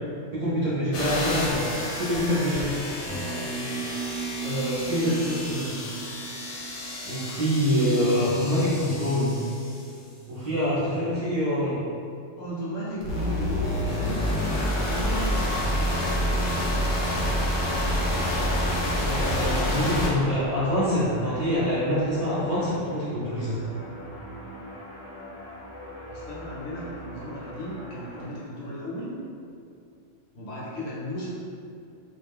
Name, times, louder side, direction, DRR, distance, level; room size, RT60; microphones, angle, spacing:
voice 1, 0.3-2.8 4.4-5.7 7.0-9.4 10.3-11.8 13.1-13.4 19.0-23.6, equal, 50° right, -12 dB, 0.5 m, -25 dB
sound 1, 0.9-9.9 13.0-20.1, left 1 dB, 90° left, 1.0 m, -28 dB
sound 2, 3.1-7.7, right 6 dB, 70° right, 0.8 m, -36 dB
voice 2, 12.4-15.5 16.1-16.9 26.0-29.1 30.3-31.3, equal, 60° left, -8 dB, 0.9 m, -36 dB
sound 3, 17.2-28.2, left 1 dB, 20° left, 0.7 m, -42 dB
2.4 x 2.1 x 3.3 m, 2.4 s
omnidirectional pair, 1.3 m